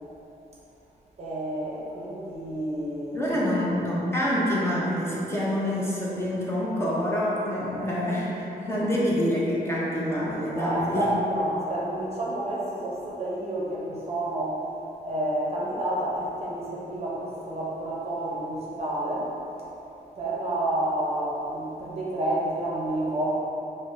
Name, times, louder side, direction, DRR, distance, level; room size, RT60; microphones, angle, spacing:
voice 1, 1.2-3.5 10.6-14.6 15.0-19.3 19.6-19.7 20.2-23.4, right 1 dB, 35° right, -5 dB, 0.6 m, -29 dB
voice 2, 3.1-11.0, equal, 15° left, -7 dB, 0.5 m, -26 dB
5.5 x 2.0 x 2.5 m, 2.9 s
wide cardioid pair, 130°, 17 cm